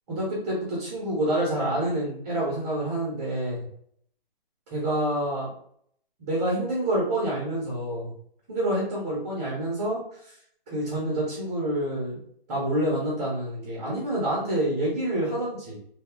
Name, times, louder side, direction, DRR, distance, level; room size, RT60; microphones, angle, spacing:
voice 1, 0.1-3.6 4.7-5.5 6.2-8.1 8.5-10.4 10.7-12.2 12.5-15.8, right 1 dB, 15° right, -5 dB, 0.5 m, -27 dB
2.8 x 2.0 x 3.5 m, 0.67 s
hypercardioid pair, 155°, 30 cm